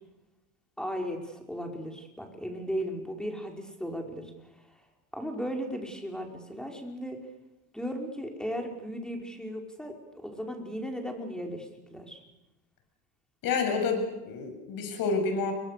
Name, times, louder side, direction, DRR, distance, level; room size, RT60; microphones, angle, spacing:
voice 1, 0.8-4.3 5.1-7.2 7.7-9.9 10.2-12.2, equal, ahead, 2 dB, 5.2 m, -36 dB
voice 2, 13.4-15.5, left 4 dB, 65° left, 5 dB, 7.5 m, -29 dB
29.5 x 23.0 x 6.8 m, 0.99 s
cardioid pair, 115°, 37 cm